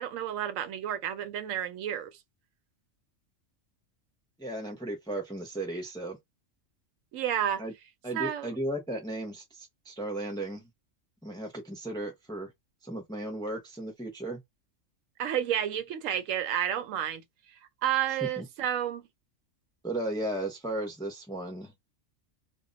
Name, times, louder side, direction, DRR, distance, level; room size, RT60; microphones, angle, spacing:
voice 1, 0.0-2.1 7.1-7.6 8.1-8.5 15.2-17.2 17.8-19.0, right 10 dB, 85° right, 1.0 m, -30 dB
voice 2, 4.4-6.2 7.6-7.7 8.0-10.7 11.2-12.5 12.8-14.4 18.2-18.5 19.8-21.7, right 1 dB, 5° left, 0.5 m, -35 dB
2.2 x 2.1 x 3.8 m
omnidirectional pair, 1.3 m